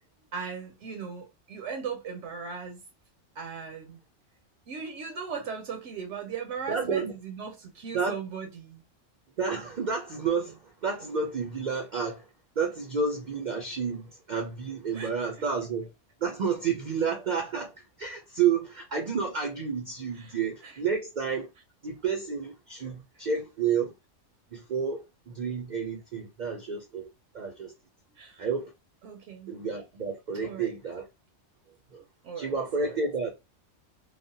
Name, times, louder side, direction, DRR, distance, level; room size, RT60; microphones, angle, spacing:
voice 1, 0.3-2.8 3.4-4.0 4.7-8.8 14.9-15.5 20.1-20.8 28.2-28.4 29.0-29.6 30.3-30.7 32.2-32.5 32.8-33.0, right 6 dB, 75° right, 0.9 m, -38 dB
voice 2, 6.7-7.1 7.9-8.2 9.4-12.3 12.6-15.9 16.2-21.5 21.8-23.9 24.5-27.1 27.3-27.7 28.4-28.7 29.5-31.1 31.9-32.0 32.4-33.3, right 5 dB, 55° right, 0.5 m, -30 dB
3.2 x 2.0 x 2.7 m
omnidirectional pair, 1.3 m